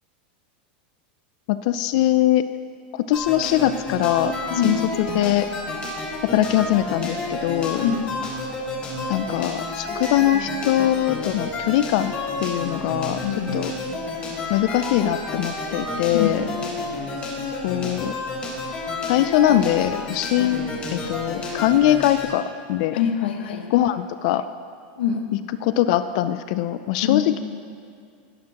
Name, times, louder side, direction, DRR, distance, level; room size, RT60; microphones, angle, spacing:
voice 1, 1.5-2.4 2.9-4.3 4.6-5.5 6.2-7.8 9.1-12.1 12.4-13.2 13.5-13.7 14.5-16.4 17.6-18.1 19.1-20.6 20.9-23.0 23.7-24.4 25.6-27.4, left 13 dB, 45° left, 12 dB, 0.3 m, -21 dB
sound 1, 3.1-22.3, left 2 dB, 20° left, 1.5 m, -30 dB
voice 2, 4.5-4.8 7.7-8.1 13.2-13.7 16.1-16.4 22.9-23.7 25.0-25.3 27.0-27.2, left 8 dB, 85° left, 4 dB, 1.3 m, -24 dB
16.5 x 10.5 x 2.9 m, 2.3 s
supercardioid pair, 175°, 5 cm